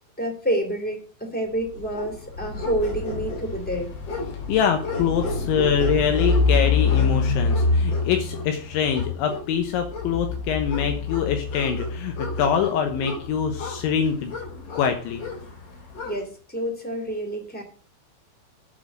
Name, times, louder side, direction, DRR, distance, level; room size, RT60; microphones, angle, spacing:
voice 1, 0.2-3.9 16.0-17.6, right 1 dB, 5° left, 4 dB, 1.2 m, -28 dB
sound 1, 1.7-16.2, left 3 dB, 55° left, 5.3 m, -27 dB
voice 2, 4.5-14.3 14.7-15.2, left 8 dB, 75° left, 6 dB, 3.3 m, -24 dB
8.6 x 7.6 x 7.5 m, 0.41 s
omnidirectional pair, 5.6 m